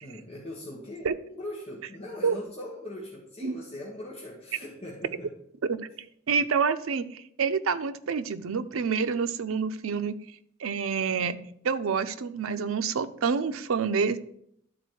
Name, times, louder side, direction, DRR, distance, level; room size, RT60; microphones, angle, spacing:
voice 1, 0.0-5.4, left 1 dB, 30° left, -4 dB, 1.3 m, -40 dB
voice 2, 6.3-10.2 10.6-11.4 11.6-14.2, right 5 dB, 85° right, 11 dB, 0.5 m, -27 dB
11.5 x 4.2 x 4.6 m, 0.70 s
head